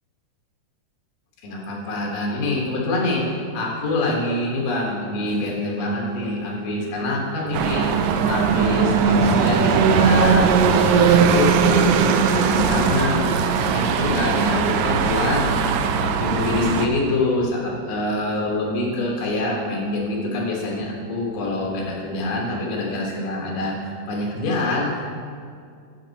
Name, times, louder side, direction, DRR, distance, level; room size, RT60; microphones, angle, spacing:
voice 1, 1.4-3.2 3.5-7.9 8.3-15.7 16.2-24.9, left 2 dB, 85° left, -2 dB, 3.1 m, -25 dB
sound 1, 7.5-16.9, right 6 dB, 90° right, 1.6 m, -19 dB
8.9 x 6.9 x 4.1 m, 2.3 s
omnidirectional pair, 3.8 m